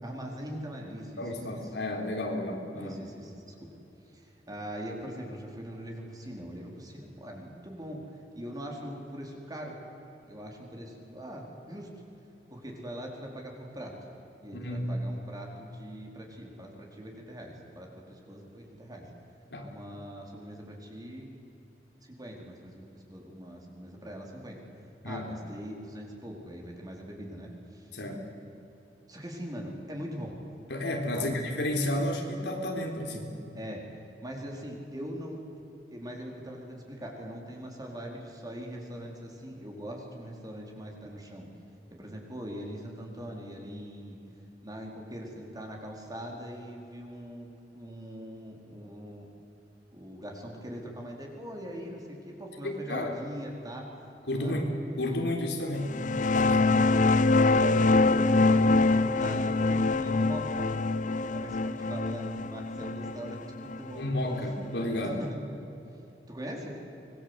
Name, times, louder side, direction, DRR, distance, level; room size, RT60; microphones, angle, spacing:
voice 1, 0.0-1.3 2.7-3.7 4.1-8.0 8.3-9.7 10.1-11.9 12.5-13.9 14.4-19.0 19.6-21.3 22.1-24.6 25.0-27.9 29.1-30.4 31.1-31.4 33.5-33.8 34.2-41.5 41.9-44.2 44.6-49.3 49.9-53.8 54.4-54.6 56.7-56.9 57.5-60.6 61.3-64.0 65.0-65.4 66.3-66.7, equal, 20° right, 0 dB, 4.4 m, -41 dB
voice 2, 1.2-3.0 14.5-14.9 19.5-19.7 25.0-25.2 27.9-28.2 30.7-33.5 52.6-53.1 54.3-54.7 55.0-56.0 56.2-56.6 63.9-65.2, left 1 dB, 75° left, 2 dB, 3.8 m, -32 dB
sound 1, 55.8-65.2, left 3 dB, 45° left, 0.6 m, -25 dB
25.0 x 21.5 x 8.1 m, 2.9 s
head